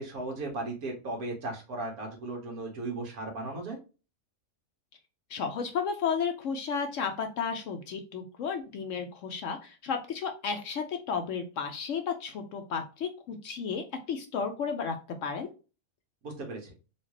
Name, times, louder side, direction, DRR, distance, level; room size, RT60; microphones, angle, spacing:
voice 1, 0.0-3.8 16.2-16.7, right 2 dB, 70° right, 1 dB, 1.7 m, -36 dB
voice 2, 5.3-15.0 15.2-15.5, left 6 dB, 65° left, 6 dB, 0.9 m, -33 dB
4.2 x 2.4 x 3.0 m, 0.32 s
omnidirectional pair, 1.6 m